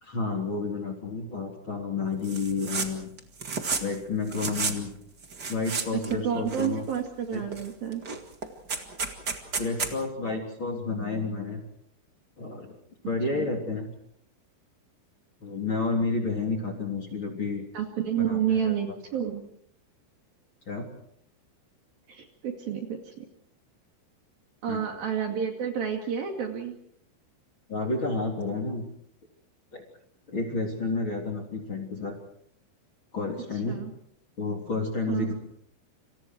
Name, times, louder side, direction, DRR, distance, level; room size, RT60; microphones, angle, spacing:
voice 1, 0.0-3.1 3.8-4.9 5.5-6.9 7.3-7.4 9.6-11.6 12.4-12.7 13.1-13.9 15.4-17.6 18.2-19.0 20.7-20.9 24.7-24.9 27.7-28.8 29.7-29.8 30.3-32.2 33.1-33.8 34.4-35.3, left 3 dB, 30° left, 1 dB, 3.5 m, -30 dB
sound 1, 2.2-2.9 3.2-4.0 4.3-4.8 5.2-6.1 6.5-7.1 7.5-7.7 7.9-9.9, right 4 dB, 75° right, 0.9 m, -32 dB
voice 2, 6.1-8.0 13.3-13.5 17.7-19.4 22.1-23.3 24.6-26.7 33.7-33.9 35.1-35.3, right 8 dB, 55° right, 3 dB, 3.6 m, -30 dB
29.5 x 27.0 x 4.7 m, 0.68 s
omnidirectional pair, 5.8 m